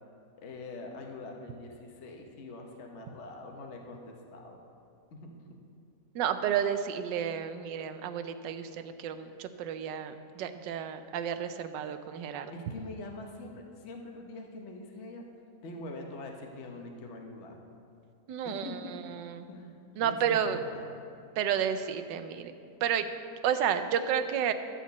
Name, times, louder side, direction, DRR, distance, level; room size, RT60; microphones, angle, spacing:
voice 1, 0.4-4.6 5.1-5.3 12.5-15.2 15.6-17.6 18.4-18.9 19.5-19.7 20.0-20.9, left 2 dB, 50° left, 2 dB, 1.0 m, -44 dB
voice 2, 6.1-12.5 18.3-19.5 20.0-20.6 21.4-22.5 22.8-23.1 23.4-24.5, right 8 dB, 80° right, 10 dB, 1.3 m, -31 dB
12.5 x 4.3 x 8.2 m, 2.5 s
omnidirectional pair, 1.9 m